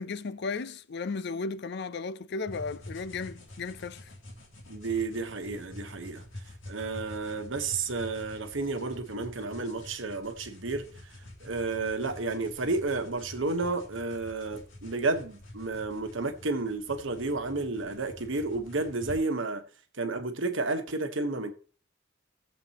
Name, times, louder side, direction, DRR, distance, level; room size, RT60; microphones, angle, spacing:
voice 1, 0.0-4.1, left 4 dB, 60° left, 0.5 m, -35 dB
sound 1, 2.5-19.2, left 1 dB, 85° left, 3.2 m, -47 dB
voice 2, 4.7-11.1 11.4-19.6 20.0-21.5, right 3 dB, 75° right, 1.2 m, -32 dB
16.0 x 7.6 x 3.0 m
head